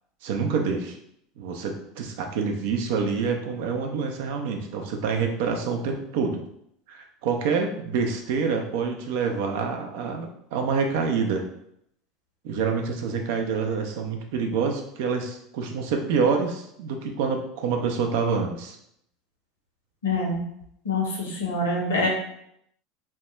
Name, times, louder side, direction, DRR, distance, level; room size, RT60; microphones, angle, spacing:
voice 1, 0.2-1.0 1.4-6.4 6.9-11.4 12.4-18.8, right 5 dB, 65° right, 3 dB, 0.4 m, -27 dB
voice 2, 20.0-20.4 20.8-22.1, left 2 dB, 85° left, -2 dB, 0.8 m, -25 dB
2.2 x 2.2 x 2.9 m, 0.74 s
hypercardioid pair, 80°, 0 cm